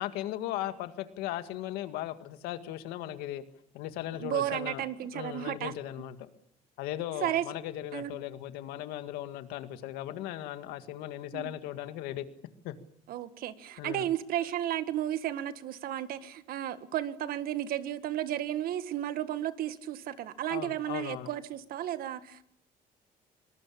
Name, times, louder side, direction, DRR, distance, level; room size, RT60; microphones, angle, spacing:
voice 1, 0.0-3.4 3.7-4.8 5.1-6.3 6.8-12.3 12.6-12.7 13.8-14.1 20.5-21.3, left 13 dB, 90° left, 10 dB, 2.1 m, -37 dB
voice 2, 4.2-5.7 7.2-7.4 7.9-8.2 11.3-11.5 13.1-22.4, right 12 dB, 70° right, 12 dB, 1.7 m, -33 dB
25.0 x 19.5 x 8.7 m, 0.70 s
cardioid pair, 90°, 15 cm